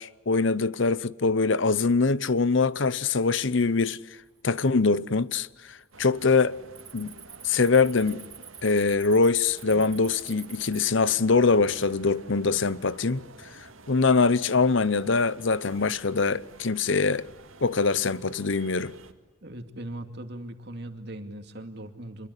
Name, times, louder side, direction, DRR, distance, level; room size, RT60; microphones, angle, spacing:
voice 1, 0.0-4.0 4.4-6.6 6.9-7.1 7.4-8.3 8.6-13.2 13.9-17.3 17.6-18.9, left 4 dB, 65° left, 0.8 m, -23 dB
Cricket, 1.9-2.4 2.8-3.2 3.8-3.9 4.6-5.2 5.4-5.7 6.0-10.9, right 7 dB, 20° right, 1.4 m, -47 dB
sound 1, 5.9-19.1, right 3 dB, 80° right, 2.2 m, -50 dB
voice 2, 19.4-22.3, right 1 dB, 55° right, 2.5 m, -39 dB
27.0 x 22.5 x 9.9 m
head